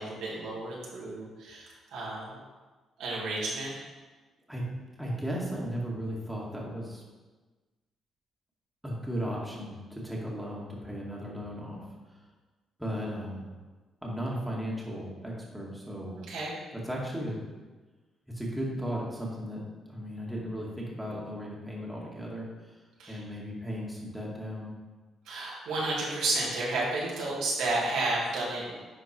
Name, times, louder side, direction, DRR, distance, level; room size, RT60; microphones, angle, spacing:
voice 1, 0.0-2.4 3.0-3.7 16.3-16.5 23.0-23.2 25.2-28.7, right 2 dB, 85° right, -5 dB, 2.6 m, -32 dB
voice 2, 5.0-7.0 8.8-11.8 12.8-13.5 14.0-16.2 16.8-17.4 18.3-19.6 19.9-22.5 23.1-24.7, equal, 5° right, -4 dB, 2.1 m, -35 dB
10.0 x 4.5 x 4.5 m, 1.3 s
cardioid pair, 90°, 0 cm